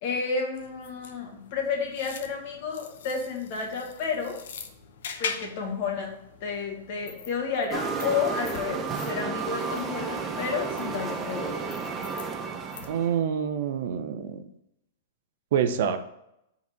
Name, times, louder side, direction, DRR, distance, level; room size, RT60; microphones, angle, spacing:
voice 1, 0.0-4.4 5.2-11.7, left 5 dB, 50° left, 1 dB, 1.7 m, -31 dB
sound 1, 0.5-13.2, left 6 dB, 75° left, 0.8 m, -43 dB
sound 2, 7.7-13.2, right 5 dB, 20° right, 0.6 m, -32 dB
voice 2, 12.9-14.4 15.5-16.0, right 8 dB, 65° right, 9 dB, 0.6 m, -26 dB
5.1 x 4.1 x 5.7 m, 0.82 s
hypercardioid pair, 150°, 0 cm